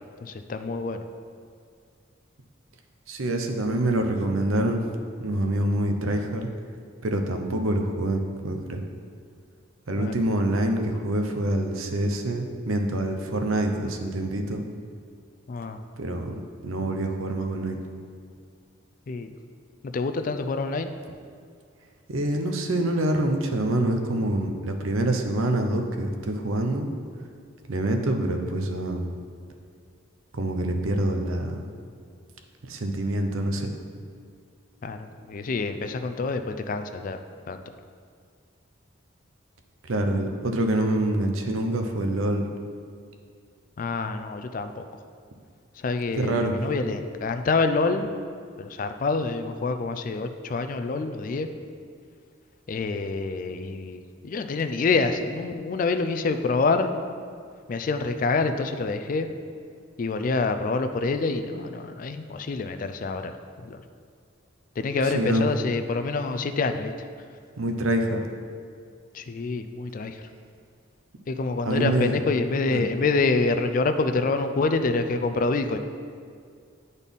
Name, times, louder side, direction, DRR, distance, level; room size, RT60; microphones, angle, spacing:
voice 1, 0.2-1.0 10.0-10.1 15.5-15.8 19.1-19.3 19.8-20.9 34.8-37.2 37.5-37.6 43.8-44.8 45.8-48.1 48.6-51.5 52.7-56.9 57.7-59.3 60.0-63.3 63.6-63.8 64.8-66.9 69.1-70.2 71.3-75.8, left 3 dB, 40° left, 8 dB, 0.3 m, -26 dB
voice 2, 3.1-4.9 5.2-6.5 7.0-8.8 9.9-14.6 16.0-16.4 16.6-17.8 22.1-26.9 27.7-29.1 30.3-31.6 32.7-33.7 39.8-42.5 46.1-46.5 65.0-65.5 67.6-68.3 71.6-72.2 72.7-72.8, right 1 dB, 90° right, 4 dB, 0.7 m, -26 dB
9.9 x 4.1 x 3.6 m, 2.2 s
head